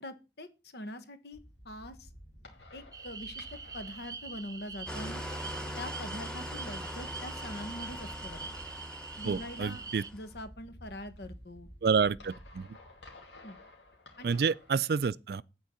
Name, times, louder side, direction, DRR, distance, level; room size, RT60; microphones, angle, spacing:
voice 1, 0.0-0.5 0.7-1.4 1.6-2.1 2.7-5.3 5.7-8.5 9.2-9.8 10.1-11.7 13.4-13.6 14.2-14.4, left 1 dB, 65° left, 1.3 m, -43 dB
sound 1, 1.3-14.7, equal, 90° left, 2.5 m, -53 dB
sound 2, 2.9-10.1, right 5 dB, 20° right, 0.8 m, -44 dB
Engine starting / Idling, 4.9-10.3, equal, 5° left, 1.0 m, -41 dB
voice 2, 9.3-10.0 11.8-12.7 14.2-15.4, right 5 dB, 60° right, 0.4 m, -29 dB
9.1 x 4.6 x 7.0 m
head